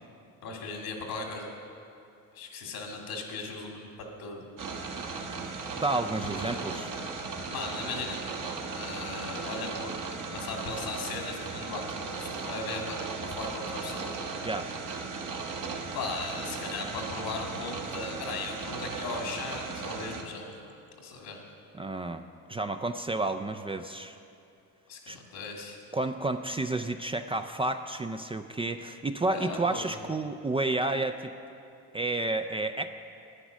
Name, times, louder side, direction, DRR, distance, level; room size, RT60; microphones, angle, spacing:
voice 1, 0.4-1.5 2.3-3.9 4.2-4.4 6.4-7.0 7.5-8.2 8.8-9.9 10.3-14.1 15.9-20.5 21.0-21.4 24.9-25.8 29.3-30.0, left 3 dB, 80° left, 1 dB, 2.1 m, -37 dB
sound 1, 4.6-20.2, right 4 dB, 60° right, 1.4 m, -37 dB
voice 2, 5.7-6.9 14.4-14.7 21.8-22.2 22.5-24.2 25.1-25.2 25.9-31.3 31.9-32.9, right 2 dB, 15° right, 6 dB, 0.3 m, -30 dB
10.0 x 10.0 x 6.1 m, 2.6 s
cardioid pair, 90°, 36 cm